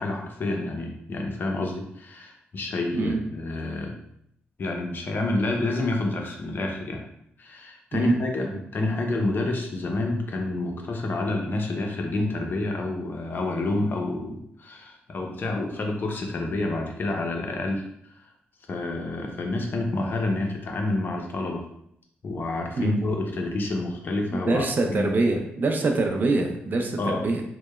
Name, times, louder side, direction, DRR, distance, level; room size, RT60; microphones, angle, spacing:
voice 1, 0.0-3.9 4.6-7.0 7.4-17.8 18.7-21.7 22.2-25.1 27.0-27.2, left 2 dB, 50° left, 2 dB, 0.5 m, -28 dB
voice 2, 24.3-27.4, right 3 dB, 45° right, 4 dB, 0.4 m, -24 dB
2.8 x 2.0 x 2.2 m, 0.74 s
cardioid pair, 75°, 4 cm